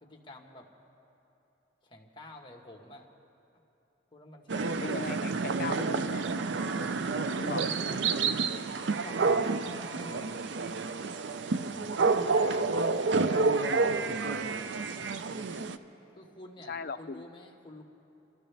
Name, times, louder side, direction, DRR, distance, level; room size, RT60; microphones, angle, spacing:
voice 1, 0.0-0.7 1.8-3.1 4.1-5.2 7.3-10.5 11.3-11.6 12.0-14.2 16.1-17.8, left 1 dB, 25° left, 2 dB, 1.4 m, -48 dB
sound 1, 4.5-15.8, right 4 dB, 65° right, 0.5 m, -29 dB
voice 2, 4.8-6.2 7.4-7.8 16.7-17.2, left 4 dB, 50° left, 10 dB, 0.5 m, -38 dB
29.0 x 13.0 x 3.4 m, 2.9 s
head